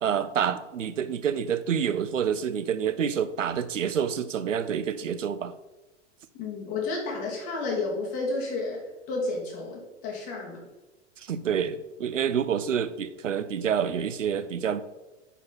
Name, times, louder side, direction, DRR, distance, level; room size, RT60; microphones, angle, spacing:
voice 1, 0.0-5.5 11.3-14.8, right 8 dB, 90° right, 13 dB, 0.5 m, -28 dB
voice 2, 6.3-8.8 9.1-10.6, left 3 dB, 50° left, -2 dB, 2.7 m, -31 dB
8.9 x 4.3 x 4.1 m, 1.1 s
figure-of-eight pair, 90°, 36 cm